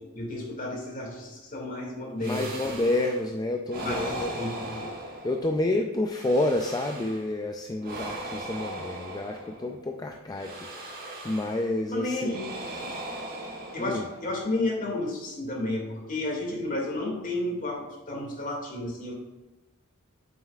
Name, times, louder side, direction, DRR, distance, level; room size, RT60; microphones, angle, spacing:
voice 1, 0.0-2.9 3.8-4.9 11.9-12.4 13.7-19.1, left 2 dB, 40° left, -1 dB, 2.2 m, -32 dB
voice 2, 2.2-4.4 5.2-10.8 11.2-12.4 13.8-14.1, left 2 dB, 20° left, 3 dB, 0.4 m, -29 dB
sound 1, 2.2-3.3 3.7-5.7 6.1-7.3 7.8-9.8 10.4-11.8 12.2-14.4, right 1 dB, 45° right, 1.4 m, -38 dB
8.9 x 7.6 x 2.4 m, 1.1 s
head